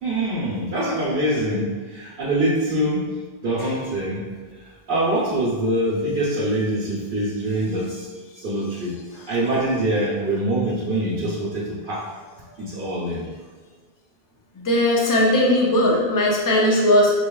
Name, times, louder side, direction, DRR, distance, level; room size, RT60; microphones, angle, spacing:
voice 1, 0.0-3.1 3.4-9.0 9.3-12.0 12.6-13.3, right 1 dB, 75° right, -9 dB, 1.1 m, -24 dB
voice 2, 14.6-17.2, left 1 dB, 25° left, -2 dB, 0.5 m, -18 dB
4.7 x 3.0 x 2.3 m, 1.5 s
omnidirectional pair, 1.0 m